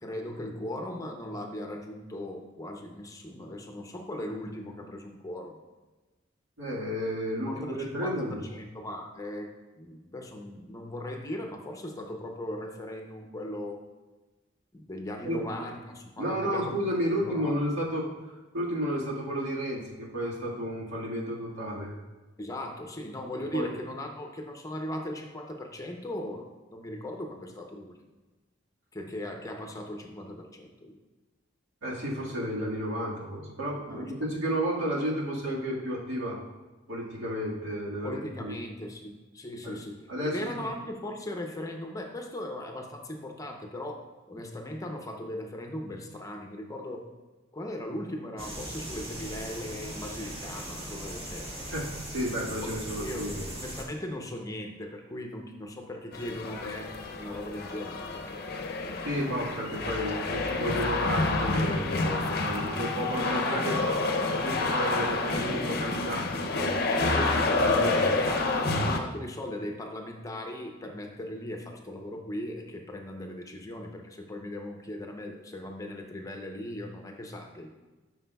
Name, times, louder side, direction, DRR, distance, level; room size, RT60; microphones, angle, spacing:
voice 1, 0.0-5.6 7.4-9.5 9.8-13.8 14.7-16.7 17.3-17.5 22.4-28.0 28.9-31.0 33.9-34.1 38.0-47.1 47.5-51.7 52.6-52.7 53.0-58.5 58.8-59.0 66.8-77.7, left 1 dB, 15° left, 3 dB, 0.7 m, -38 dB
voice 2, 6.6-8.4 15.2-15.4 16.2-21.9 23.5-23.7 31.8-36.4 36.9-38.5 39.6-39.8 40.1-40.5 51.7-53.5 59.0-63.8 64.3-66.8 67.1-67.2 67.6-68.1, equal, 85° right, -5 dB, 1.8 m, -32 dB
sound 1, 48.4-53.8, right 1 dB, 30° right, 1.5 m, -39 dB
sound 2, 56.1-69.0, left 3 dB, 55° left, 0.6 m, -28 dB
11.5 x 6.0 x 2.3 m, 1.2 s
head